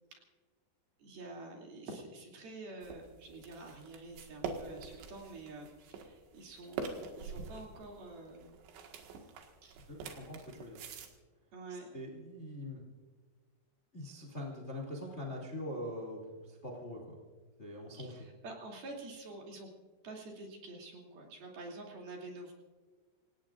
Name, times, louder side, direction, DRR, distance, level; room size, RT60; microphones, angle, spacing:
voice 1, 1.0-8.6 9.6-9.8 11.5-11.9 17.9-19.7 20.0-22.5, right 2 dB, 55° right, -1 dB, 4.5 m, -48 dB
sound 1, 2.8-11.1, right 5 dB, 80° right, 4.1 m, -45 dB
voice 2, 9.9-10.8 11.7-12.8 13.9-17.1 17.6-18.1, left 1 dB, 20° left, -2 dB, 1.8 m, -43 dB
27.5 x 18.0 x 2.5 m, 1.4 s
omnidirectional pair, 5.3 m